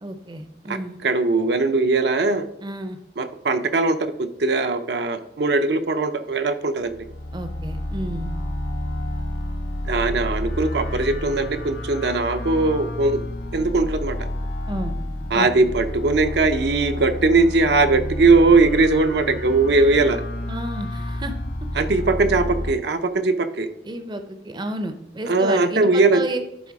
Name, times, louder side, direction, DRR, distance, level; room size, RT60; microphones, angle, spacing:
voice 1, 0.0-1.0 2.6-3.0 7.3-8.3 14.7-15.0 15.3-15.7 20.5-21.7 23.8-26.4, right 1 dB, 25° right, 8 dB, 0.6 m, -31 dB
voice 2, 1.0-2.5 3.2-7.0 9.8-13.2 13.5-14.2 15.3-20.2 21.8-23.7 25.3-26.2, right 3 dB, 70° right, 8 dB, 0.6 m, -20 dB
sound 1, 6.9-22.7, left 1 dB, 80° left, 1.1 m, -30 dB
11.0 x 4.0 x 4.7 m, 0.79 s
head